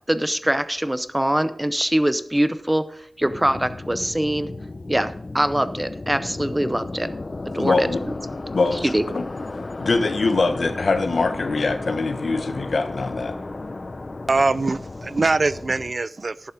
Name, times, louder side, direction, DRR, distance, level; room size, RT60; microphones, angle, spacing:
voice 1, 0.1-4.5 4.9-7.1 7.5-8.1 8.7-9.0, right 1 dB, 15° right, 0.6 m, -23 dB
sound 1, 3.2-15.9, left 2 dB, 50° left, 0.5 m, -34 dB
voice 2, 7.6-8.0 8.5-9.2 9.8-13.4, left 3 dB, 80° left, 1.1 m, -23 dB
voice 3, 14.3-16.5, right 3 dB, 55° right, 0.3 m, -22 dB
11.5 x 7.1 x 5.0 m
wide cardioid pair, 90°, 0 cm